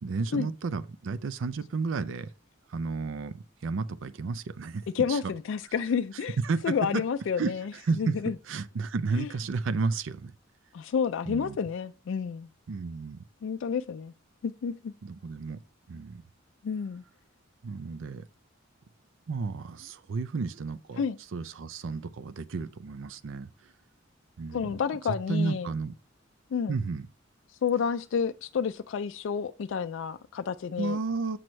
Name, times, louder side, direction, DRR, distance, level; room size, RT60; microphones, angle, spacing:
voice 1, 0.0-2.3 2.7-5.3 6.4-7.0 7.4-10.3 11.3-11.6 12.7-13.3 15.0-15.6 15.9-16.2 17.6-18.3 19.3-21.0 21.3-23.7 24.4-24.8 25.3-25.9 26.7-27.1 30.8-31.4, right 4 dB, 70° right, 0.5 m, -32 dB
voice 2, 4.9-6.4 6.6-7.7 8.0-8.3 9.2-9.3 10.7-12.5 13.4-14.1 14.4-14.9 16.6-17.0 21.0-21.2 24.5-25.7 26.5-26.8 27.5-31.0, left 6 dB, 65° left, 0.3 m, -30 dB
7.7 x 6.1 x 3.1 m
head